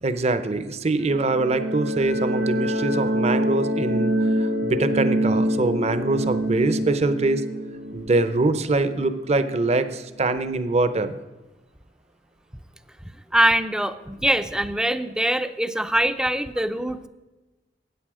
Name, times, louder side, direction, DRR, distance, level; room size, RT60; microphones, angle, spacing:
voice 1, 0.0-7.4 7.9-11.1, right 2 dB, 40° right, 11 dB, 0.7 m, -23 dB
sound 1, 1.0-9.6, equal, 70° right, 1.3 m, -26 dB
voice 2, 13.3-17.1, right 1 dB, 5° right, 11 dB, 0.5 m, -23 dB
13.5 x 9.1 x 4.9 m, 1.1 s
head